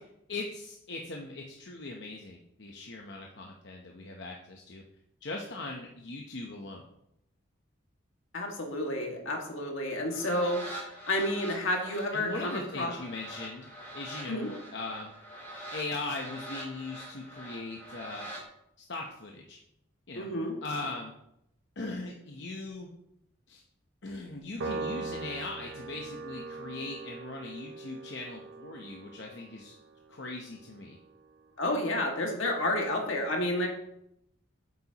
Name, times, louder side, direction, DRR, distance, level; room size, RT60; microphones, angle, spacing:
voice 1, 0.3-4.8 5.2-6.8 12.1-13.7 13.9-15.1 15.7-18.3 18.8-19.6 20.1-20.3 20.6-21.1 21.8-22.9 23.5-23.6 24.0-29.8 30.1-31.0, left 3 dB, 55° left, 1 dB, 0.8 m, -39 dB
voice 2, 8.3-12.9 14.3-14.5 20.2-20.5 31.6-33.7, left 1 dB, 75° left, 1 dB, 1.9 m, -30 dB
sound 1, 9.9-18.4, right 1 dB, 10° left, 3.3 m, -44 dB
Piano, 24.6-31.2, right 3 dB, 75° right, 0.9 m, -41 dB
8.6 x 8.2 x 2.9 m, 0.78 s
head